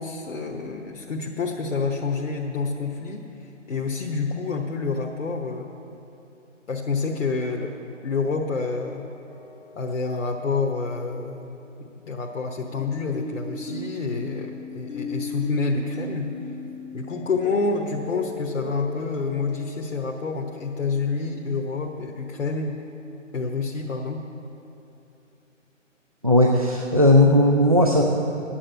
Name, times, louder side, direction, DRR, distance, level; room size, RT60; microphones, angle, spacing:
voice 1, 0.0-5.7 6.7-9.1 9.8-16.5 16.9-22.8 23.3-24.3, left 4 dB, 70° left, 1 dB, 1.1 m, -28 dB
sound 1, 9.3-10.1 12.7-20.5, left 4 dB, 45° left, 0.9 m, -37 dB
voice 2, 26.2-28.0, left 1 dB, 30° right, 1 dB, 0.4 m, -17 dB
9.7 x 8.9 x 7.7 m, 3.0 s
figure-of-eight pair, 155°, 38 cm